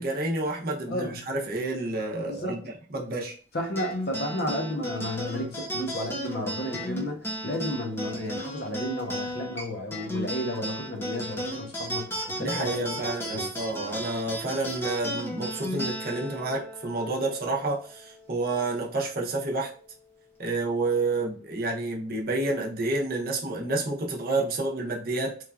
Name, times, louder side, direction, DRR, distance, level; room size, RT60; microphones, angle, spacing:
voice 1, 0.0-2.6 2.9-3.3 12.4-19.7 20.4-25.4, right 2 dB, 50° right, 0.6 m, -29 dB
voice 2, 0.9-1.2 2.3-2.6 3.5-13.0 13.2-13.5, left 1 dB, 55° left, 0.6 m, -33 dB
sound 1, 3.8-18.5, equal, 10° left, 0.5 m, -35 dB
3.1 x 2.3 x 2.3 m
head